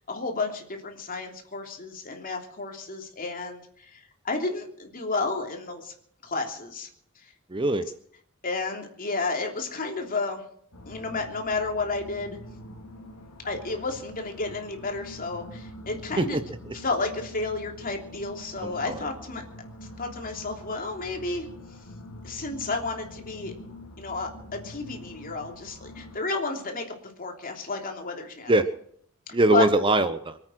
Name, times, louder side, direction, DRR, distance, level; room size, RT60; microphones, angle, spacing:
voice 1, 0.1-5.9 6.2-6.9 8.4-10.4 10.9-12.4 13.4-16.4 16.7-19.4 20.0-21.5 22.2-23.5 24.0-26.8 27.2-28.5 29.3-29.7, left 3 dB, 40° left, 2 dB, 3.2 m, -31 dB
voice 2, 7.5-7.8 16.2-16.7 18.6-19.1 28.5-28.6 29.3-30.4, right 2 dB, 25° right, 11 dB, 0.8 m, -23 dB
sound 1, 10.7-26.2, left 1 dB, 85° left, 2.7 m, -45 dB
25.0 x 9.0 x 6.3 m, 0.66 s
head